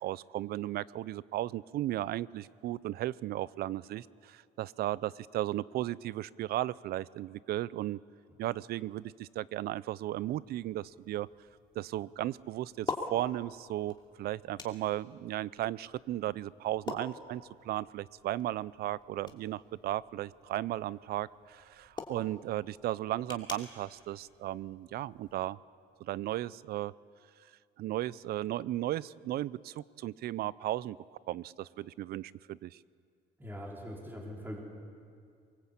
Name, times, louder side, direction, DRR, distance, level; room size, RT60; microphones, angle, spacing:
voice 1, 0.0-8.0 8.4-11.3 11.8-25.6 26.0-26.9 27.8-31.0 31.3-32.8, right 14 dB, 65° right, 20 dB, 0.5 m, -35 dB
sound 1, 10.1-25.3, left 3 dB, 25° left, 2.8 m, -47 dB
voice 2, 33.4-34.6, equal, 10° right, -2 dB, 4.8 m, -42 dB
23.5 x 21.0 x 8.5 m, 2.2 s
cardioid pair, 110°, 17 cm